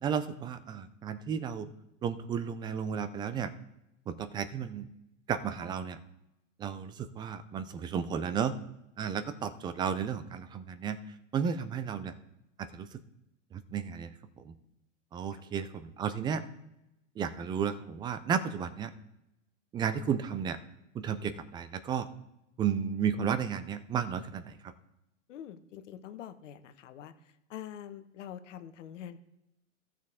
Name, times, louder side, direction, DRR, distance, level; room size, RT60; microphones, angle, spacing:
voice 1, 0.0-1.7 2.0-3.5 4.1-4.9 5.3-6.0 6.6-8.5 9.0-11.0 11.3-12.1 12.6-12.9 13.5-14.5 15.1-16.4 17.2-18.9 19.7-20.6 20.9-22.1 22.6-24.6, right 7 dB, 10° right, 12 dB, 0.3 m, -33 dB
voice 2, 25.3-27.1 27.5-29.2, left 10 dB, 70° left, 9 dB, 1.2 m, -45 dB
15.0 x 6.3 x 3.6 m, 0.90 s
hypercardioid pair, 110°, 39 cm